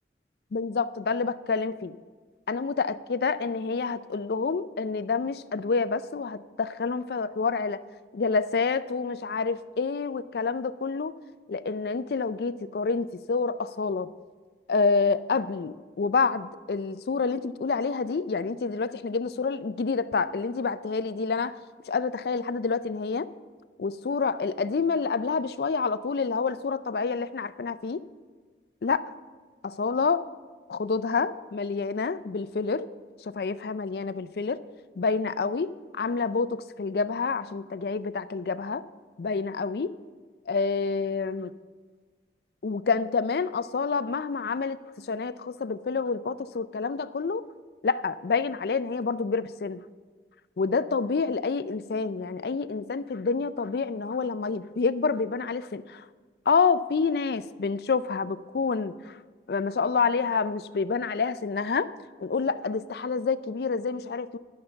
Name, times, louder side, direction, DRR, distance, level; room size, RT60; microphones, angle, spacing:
voice 1, 0.5-2.0 2.5-7.8 8.1-11.1 11.5-14.1 14.7-21.6 21.9-23.3 23.8-28.0 28.8-29.1 29.6-30.2 30.7-32.9 33.2-34.6 35.0-38.8 39.2-39.9 40.5-41.5 42.6-47.4 47.8-49.8 50.6-56.0 56.5-59.2 59.5-61.9 62.2-64.4, left 4 dB, 60° left, 14 dB, 0.4 m, -28 dB
11.0 x 6.5 x 5.7 m, 1.5 s
head